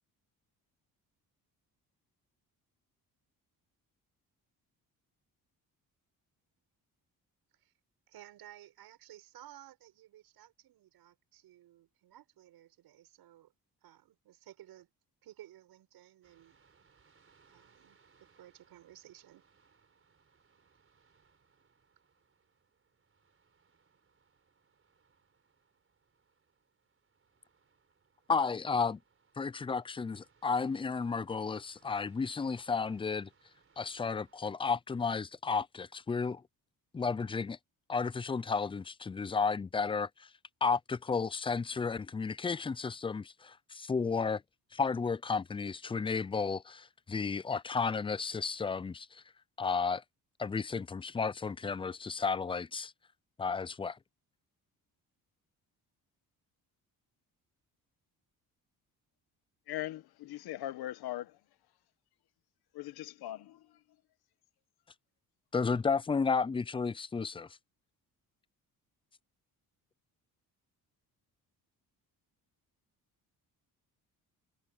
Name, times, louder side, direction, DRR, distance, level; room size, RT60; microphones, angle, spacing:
voice 1, 8.1-13.5 13.8-14.9 15.2-16.6 17.5-19.4, right 13 dB, 80° right, 7.1 m, -56 dB
sound 1, 16.2-34.4, right 5 dB, 35° right, 4.6 m, -70 dB
voice 2, 28.3-29.0 29.4-33.3 33.8-36.4 36.9-37.6 37.9-40.3 40.6-44.4 44.7-49.2 49.6-50.0 50.4-52.9 53.4-54.0 65.5-67.5, left 5 dB, 15° left, 0.4 m, -33 dB
voice 3, 59.7-61.4 62.7-63.8, left 14 dB, 85° left, 1.4 m, -40 dB
cardioid pair, 100°, 37 cm